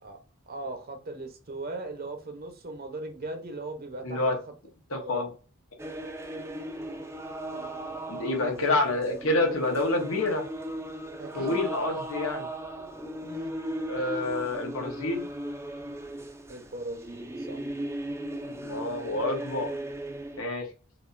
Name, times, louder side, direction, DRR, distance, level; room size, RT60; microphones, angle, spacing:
voice 1, 0.5-4.2 5.0-5.3 7.9-8.0 8.3-8.8 11.2-11.6 13.2-13.5 16.5-17.7, right 2 dB, 45° right, 0.9 m, -38 dB
voice 2, 4.0-4.4 4.9-5.3 8.1-10.4 11.3-12.4 13.9-15.2 18.5-19.7 20.4-20.7, left 2 dB, 85° left, 1.3 m, -28 dB
sound 1, 5.8-20.4, right 1 dB, 15° right, 0.6 m, -37 dB
5.0 x 2.7 x 2.6 m
head